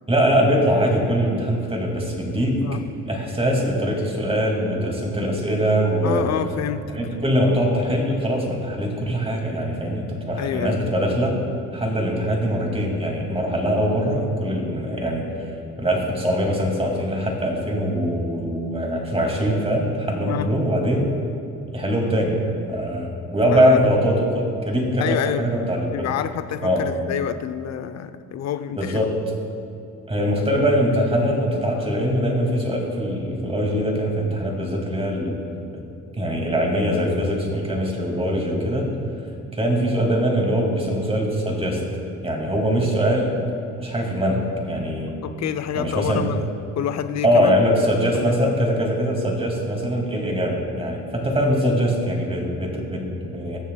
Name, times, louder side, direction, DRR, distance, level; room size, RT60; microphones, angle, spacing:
voice 1, 0.1-2.7 3.1-6.3 6.9-11.3 11.7-15.3 15.8-21.0 21.7-25.9 26.6-26.9 28.7-29.2 30.1-35.4 35.7-35.8 36.2-38.9 39.5-41.8 42.2-43.4 43.8-45.2 45.7-46.2 47.2-53.6, equal, 20° right, 0 dB, 2.3 m, -22 dB
voice 2, 6.0-7.0 10.4-10.8 20.3-20.5 23.5-23.9 25.0-25.5 25.8-29.0 45.1-47.6 48.1-48.5, left 9 dB, 60° left, 11 dB, 0.6 m, -28 dB
20.0 x 7.2 x 2.3 m, 2.7 s
cardioid pair, 90°, 30 cm